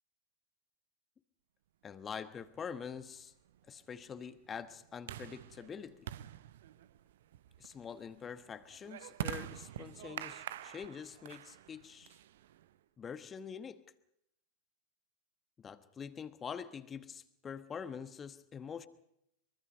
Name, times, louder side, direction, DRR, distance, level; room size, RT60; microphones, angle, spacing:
voice 1, 1.8-3.3 3.7-6.1 7.6-12.2 13.0-13.8 15.6-18.9, left 7 dB, 20° left, 1.1 m, -45 dB
sound 1, 2.4-12.8, right 12 dB, 55° right, 0.7 m, -46 dB
23.5 x 23.5 x 5.4 m
figure-of-eight pair, 90°, 0 cm